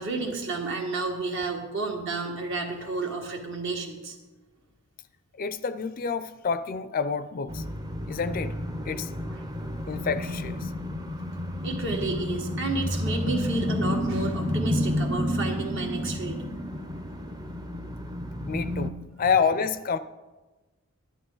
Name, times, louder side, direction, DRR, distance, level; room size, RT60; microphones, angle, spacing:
voice 1, 0.0-4.2 9.3-9.4 11.6-16.5, right 3 dB, 55° right, 1 dB, 1.9 m, -31 dB
voice 2, 5.4-7.6 8.1-8.5 8.9-9.1 9.9-10.7 18.5-20.0, left 5 dB, 40° left, 12 dB, 0.4 m, -28 dB
sound 1, 7.5-18.9, left 1 dB, 15° right, 0.6 m, -30 dB
12.5 x 11.0 x 3.9 m, 1.2 s
head